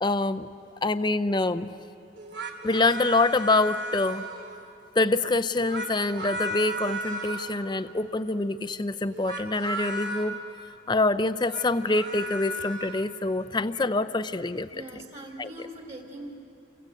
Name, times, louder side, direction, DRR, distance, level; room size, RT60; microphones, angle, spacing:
voice 1, 0.0-0.5 0.8-1.7 2.6-4.2 5.0-10.4 10.9-14.7 15.4-15.5, left 2 dB, 20° left, 12 dB, 0.5 m, -25 dB
sound 1, 2.2-4.6 5.5-7.5 9.1-10.3 11.3-13.0, right 1 dB, 60° right, 3.0 m, -35 dB
voice 2, 14.7-16.4, right 1 dB, 30° right, 2 dB, 3.3 m, -41 dB
28.5 x 24.5 x 7.9 m, 2.6 s
head